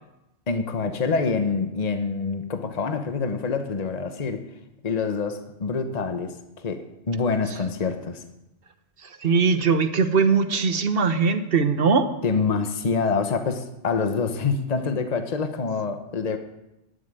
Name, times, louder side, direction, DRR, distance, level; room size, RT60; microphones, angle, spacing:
voice 1, 0.5-4.4 4.8-8.2 12.2-16.4, left 4 dB, 40° left, 7 dB, 1.1 m, -26 dB
voice 2, 9.2-12.1, right 5 dB, 60° right, 10 dB, 1.1 m, -20 dB
12.0 x 7.7 x 9.1 m, 0.91 s
omnidirectional pair, 1.1 m